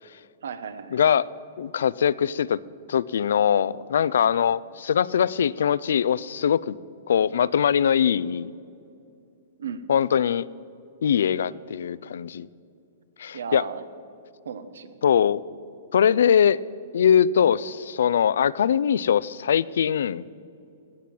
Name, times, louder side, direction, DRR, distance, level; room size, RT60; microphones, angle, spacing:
voice 1, 0.4-1.0 9.6-9.8 13.3-13.8 14.4-15.0, right 6 dB, 85° right, 12 dB, 1.0 m, -35 dB
voice 2, 0.9-1.2 1.6-2.6 2.9-6.8 7.1-8.5 9.9-10.4 11.0-12.5 13.2-13.6 15.0-15.4 15.9-16.6 16.9-20.2, left 8 dB, 80° left, 20 dB, 0.4 m, -22 dB
16.5 x 6.1 x 8.4 m, 2.5 s
hypercardioid pair, 160°, 0 cm